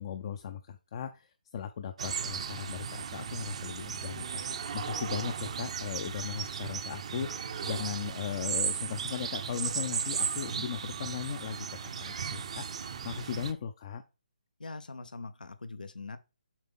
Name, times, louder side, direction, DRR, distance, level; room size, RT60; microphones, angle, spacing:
voice 1, 0.0-4.2 4.5-14.0, left 8 dB, 35° left, 0.5 m, -38 dB
sound 1, 2.0-13.5, right 7 dB, 45° right, 0.7 m, -36 dB
voice 2, 14.6-16.2, left 3 dB, 80° left, 0.7 m, -42 dB
7.3 x 3.6 x 3.6 m
figure-of-eight pair, 155°, 5 cm